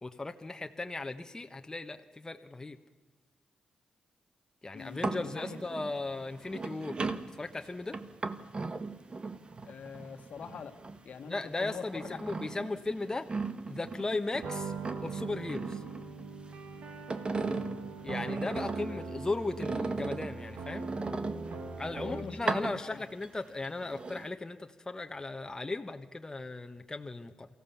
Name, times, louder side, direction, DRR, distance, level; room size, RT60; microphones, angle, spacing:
voice 1, 0.0-2.8 4.6-7.0 7.4-8.0 11.2-13.3 13.7-14.7 15.0-15.8 18.0-20.8 21.8-27.5, left 2 dB, 25° left, 6 dB, 1.2 m, -37 dB
voice 2, 4.7-5.6 9.6-10.8 11.0-12.2 17.4-17.8 22.0-23.0, left 6 dB, 70° left, 8 dB, 1.6 m, -44 dB
Beer Bottle Handling, 4.8-11.2 11.6-14.5 14.8-16.6 16.9-19.0 19.6-21.8 22.3-23.3 23.6-24.3, right 3 dB, 40° right, 1.4 m, -37 dB
sound 1, 14.4-22.4, right 4 dB, 75° right, 2.4 m, -41 dB
23.5 x 15.5 x 7.2 m, 1.2 s
cardioid pair, 60°, 3 cm